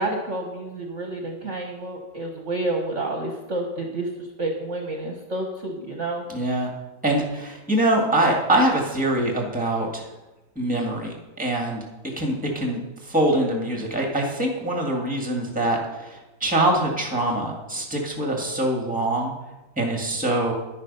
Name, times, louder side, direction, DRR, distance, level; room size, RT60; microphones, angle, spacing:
voice 1, 0.0-6.2, right 2 dB, 45° right, 1 dB, 1.4 m, -29 dB
voice 2, 6.3-6.7 7.0-10.0 10.6-11.8 12.2-19.3 19.8-20.5, right 1 dB, 5° right, 1 dB, 1.8 m, -24 dB
10.5 x 9.5 x 5.4 m, 1.1 s
omnidirectional pair, 1.9 m